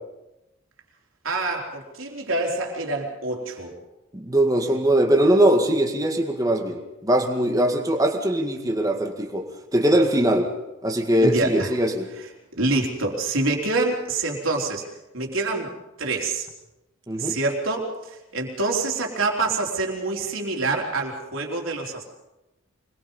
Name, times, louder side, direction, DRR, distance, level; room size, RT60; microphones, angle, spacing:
voice 1, 1.2-3.8 11.2-11.8 12.1-12.3 12.6-14.8 15.1-15.7 16.0-16.5 17.2-22.0, right 3 dB, 80° right, 1 dB, 3.8 m, -26 dB
voice 2, 4.1-9.5 9.7-10.5 10.8-12.1 17.1-17.4, right 1 dB, 15° right, 3 dB, 2.0 m, -21 dB
24.5 x 21.0 x 5.5 m, 0.97 s
head